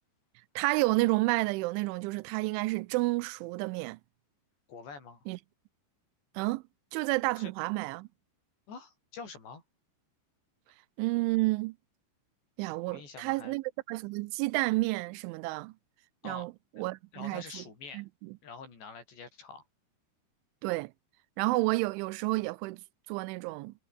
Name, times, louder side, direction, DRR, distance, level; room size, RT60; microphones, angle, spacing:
voice 1, 0.6-4.0 5.3-5.4 6.4-6.6 6.9-8.1 11.0-11.8 12.6-15.7 16.2-17.6 17.9-18.3 20.6-20.9 21.4-22.8 23.1-23.7, right 22 dB, 85° right, 3.0 m, -30 dB
voice 2, 4.7-5.3 7.4-7.5 8.7-9.6 12.9-13.5 16.2-16.5 16.8-16.9 17.1-18.1 18.4-19.7, left 5 dB, 65° left, 9.2 m, -46 dB
omnidirectional pair, 5.5 m